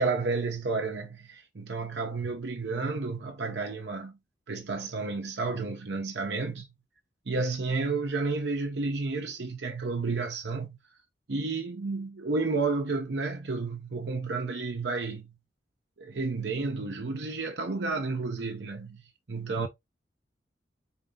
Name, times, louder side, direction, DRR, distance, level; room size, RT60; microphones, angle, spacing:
voice 1, 0.0-4.2 4.5-6.7 7.3-10.8 11.3-15.3 16.0-19.7, right 3 dB, 70° right, 0.7 m, -31 dB
4.4 x 2.8 x 3.6 m
head